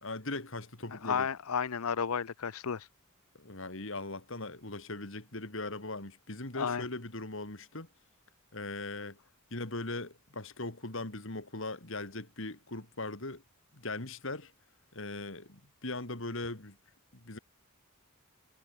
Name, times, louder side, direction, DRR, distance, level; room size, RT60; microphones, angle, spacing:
voice 1, 0.0-1.3 3.4-7.9 8.5-9.2 9.5-13.4 13.7-14.5 14.9-16.8 17.1-17.4, left 2 dB, 60° left, 3.1 m, -39 dB
voice 2, 0.9-2.9 6.6-6.8, left 6 dB, 90° left, 0.7 m, -32 dB
head